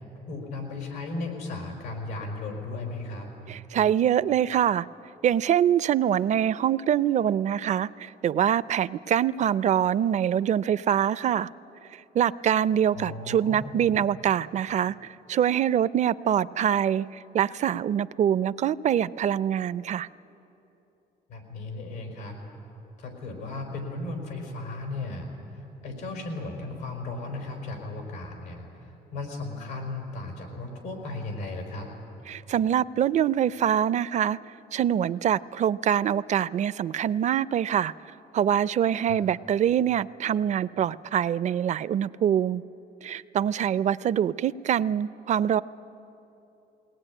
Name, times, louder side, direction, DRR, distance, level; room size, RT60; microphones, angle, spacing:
voice 1, 0.3-3.3 12.9-13.9 21.3-22.4 23.0-31.9 39.0-39.2, left 2 dB, 90° left, 2 dB, 5.1 m, -36 dB
voice 2, 3.5-4.9 5.2-11.5 12.1-17.1 17.3-20.1 32.3-34.4 34.7-37.9 38.3-42.6 43.0-45.6, right 9 dB, 45° right, 18 dB, 0.5 m, -24 dB
21.5 x 19.0 x 9.9 m, 3.0 s
cardioid pair, 110°, 17 cm